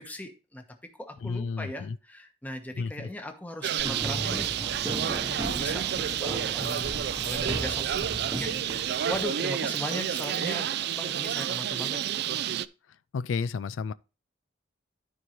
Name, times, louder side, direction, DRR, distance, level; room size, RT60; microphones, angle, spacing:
voice 1, 0.0-7.9 8.2-12.1, left 1 dB, 10° left, 1.0 m, -39 dB
voice 2, 1.2-2.0 2.8-3.1 13.1-13.9, left 5 dB, 85° left, 0.4 m, -31 dB
Bird, 3.6-12.7, right 9 dB, 60° right, 0.4 m, -30 dB
sound 1, 3.8-9.2, right 1 dB, 15° right, 0.9 m, -36 dB
13.0 x 4.7 x 3.1 m
head